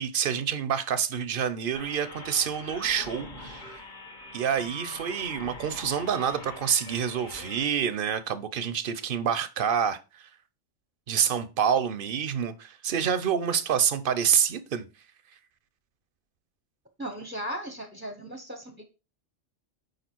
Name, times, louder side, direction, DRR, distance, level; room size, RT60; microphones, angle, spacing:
voice 1, 0.0-3.8 4.3-10.2 11.1-14.8, right 8 dB, 50° right, 0.8 m, -27 dB
sound 1, 1.7-7.6, left 2 dB, 40° left, 1.4 m, -43 dB
voice 2, 17.0-18.8, equal, 10° right, 0.7 m, -37 dB
6.6 x 4.9 x 4.5 m
omnidirectional pair, 1.3 m